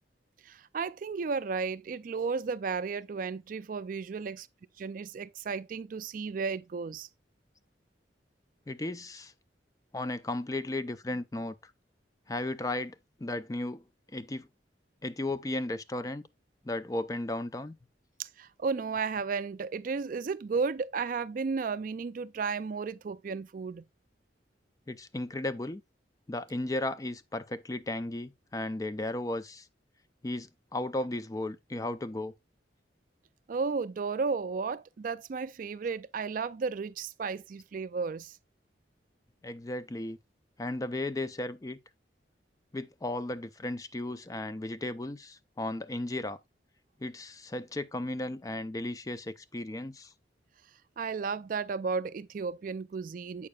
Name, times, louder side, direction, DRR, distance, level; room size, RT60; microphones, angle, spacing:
voice 1, 0.4-4.5 4.8-7.1 18.2-23.8 33.5-38.4 51.0-53.5, right 5 dB, 50° right, 0.3 m, -33 dB
voice 2, 8.7-9.3 9.9-11.5 12.3-13.8 14.1-14.5 15.0-16.2 16.6-17.8 24.9-25.8 26.3-29.7 30.2-32.3 39.4-40.2 40.6-41.8 42.7-46.4 47.0-50.1, left 2 dB, 20° left, 0.4 m, -35 dB
8.4 x 6.6 x 2.3 m
head